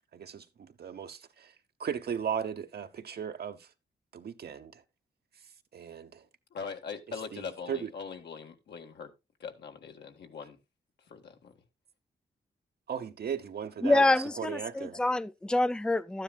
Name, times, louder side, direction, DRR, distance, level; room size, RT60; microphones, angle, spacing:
voice 1, 0.1-1.5 1.8-3.7 4.1-4.8 5.7-6.2 7.3-7.9 12.9-15.0, right 8 dB, 65° right, 1.0 m, -37 dB
voice 2, 6.5-9.1 9.4-10.6 11.1-11.6, left 5 dB, 80° left, 1.6 m, -41 dB
voice 3, 13.8-16.2, left 2 dB, 5° left, 0.5 m, -26 dB
12.0 x 9.9 x 2.3 m
cardioid pair, 50°, 18 cm